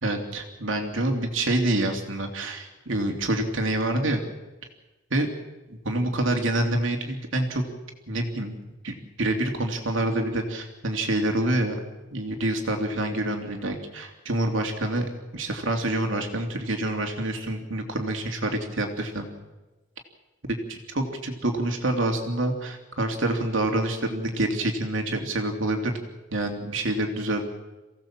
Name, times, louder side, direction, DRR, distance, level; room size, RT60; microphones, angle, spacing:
voice 1, 0.0-4.2 5.1-5.3 5.8-7.7 8.1-8.6 8.8-11.8 12.1-15.1 15.3-19.3 20.7-26.0 26.3-27.5, right 1 dB, 70° right, 4 dB, 2.7 m, -27 dB
29.0 x 16.5 x 7.4 m, 1.1 s
head